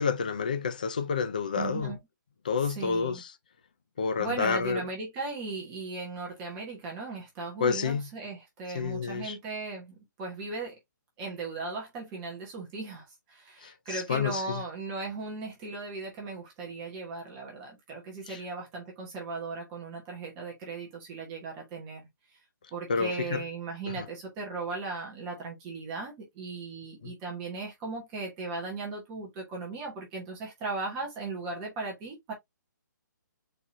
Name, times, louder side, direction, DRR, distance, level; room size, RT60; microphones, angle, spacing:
voice 1, 0.0-1.9 2.4-3.3 4.0-4.8 7.6-8.1 8.7-9.4 13.6-14.4 18.3-18.4 22.9-23.4 24.0-24.1 27.0-27.1, left 5 dB, 25° left, 0.4 m, -29 dB
voice 2, 1.5-2.0 2.6-3.2 4.2-10.8 11.2-22.4 22.7-32.3, right 3 dB, 10° right, 1.0 m, -37 dB
4.1 x 3.7 x 2.9 m
hypercardioid pair, 180°, 11 cm